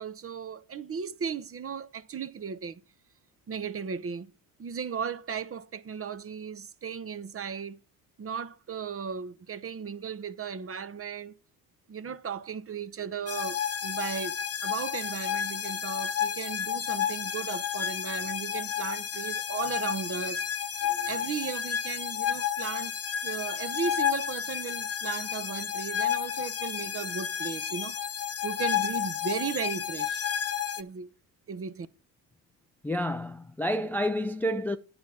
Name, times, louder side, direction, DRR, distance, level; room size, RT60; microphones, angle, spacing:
voice 1, 0.0-2.8 3.5-4.3 4.6-7.8 8.2-11.3 11.9-20.4 21.1-22.9 23.2-28.0 28.4-30.2 30.8-31.1 31.5-31.9, right 6 dB, 30° right, 0.8 m, -36 dB
sound 1, 13.3-30.8, left 9 dB, 30° left, 0.8 m, -31 dB
voice 2, 32.8-34.8, equal, 5° left, 0.4 m, -30 dB
9.6 x 4.2 x 7.4 m
hypercardioid pair, 65°, 46 cm